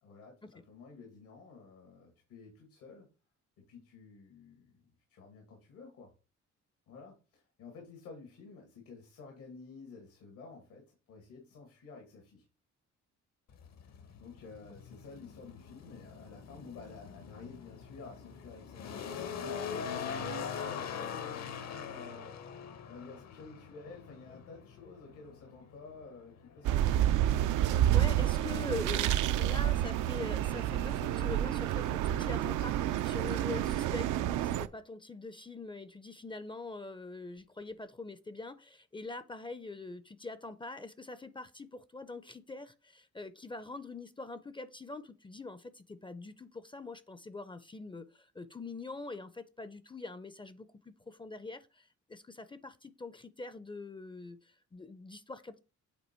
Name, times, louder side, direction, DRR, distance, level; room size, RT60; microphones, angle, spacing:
voice 1, 0.0-3.1 3.6-6.1 6.9-12.5 13.8-22.4 22.9-27.1, left 4 dB, 90° left, 1.9 m, -51 dB
sound 1, 13.5-28.0, left 7 dB, 60° left, 0.8 m, -43 dB
sound 2, 26.6-34.7, right 12 dB, 80° right, 0.5 m, -29 dB
voice 2, 27.9-55.6, left 3 dB, 15° left, 0.4 m, -44 dB
8.1 x 2.9 x 4.3 m
cardioid pair, 90°, 30 cm